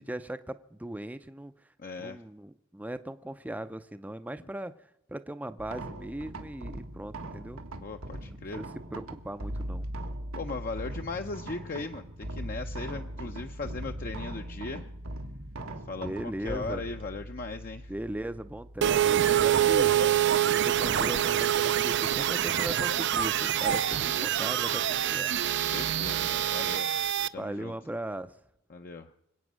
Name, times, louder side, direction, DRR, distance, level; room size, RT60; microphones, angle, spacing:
voice 1, 0.0-1.7 2.0-7.6 8.5-9.9 16.0-16.8 17.9-20.0 20.4-24.8 25.1-25.3 27.3-28.4, right 1 dB, 5° right, 10 dB, 0.5 m, -38 dB
voice 2, 1.8-2.2 7.8-8.6 10.4-14.9 15.9-17.9 25.7-26.9 27.3-27.7 28.7-29.1, left 3 dB, 45° left, 5 dB, 0.6 m, -38 dB
sound 1, 5.6-19.9, right 1 dB, 85° right, 1.5 m, -40 dB
sound 2, 18.8-27.3, right 10 dB, 60° right, 0.5 m, -26 dB
25.5 x 8.8 x 6.2 m, 0.82 s
head